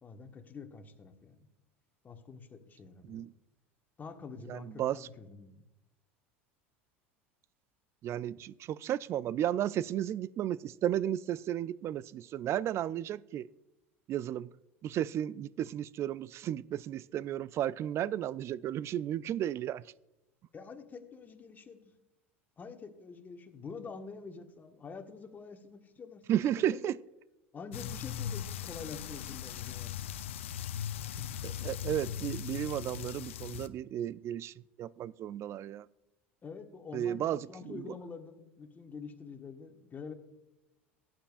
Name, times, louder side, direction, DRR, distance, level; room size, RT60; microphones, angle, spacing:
voice 1, 0.0-1.5 2.0-3.2 4.0-5.6 20.5-21.8 22.6-26.9 27.5-30.3 31.2-31.4 36.4-40.1, left 5 dB, 25° left, 1.5 m, -47 dB
voice 2, 4.5-5.1 8.0-13.5 14.1-14.5 14.8-19.8 26.3-26.9 31.4-35.9 36.9-37.8, right 11 dB, 40° right, 0.4 m, -34 dB
sound 1, 27.7-33.7, left 9 dB, 80° left, 0.5 m, -39 dB
18.0 x 8.9 x 2.5 m
hypercardioid pair, 80°, 7 cm